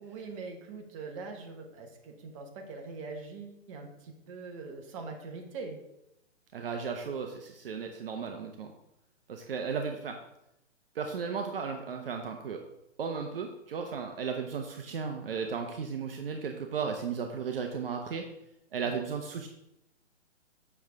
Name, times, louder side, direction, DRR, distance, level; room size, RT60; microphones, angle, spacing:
voice 1, 0.0-5.8, right 4 dB, 25° right, 2 dB, 1.1 m, -43 dB
voice 2, 6.5-8.7 9.3-10.2 10.9-12.6 13.0-18.2 18.7-19.5, right 6 dB, 50° right, 4 dB, 0.9 m, -35 dB
7.2 x 6.7 x 3.5 m, 0.84 s
hypercardioid pair, 155°, 37 cm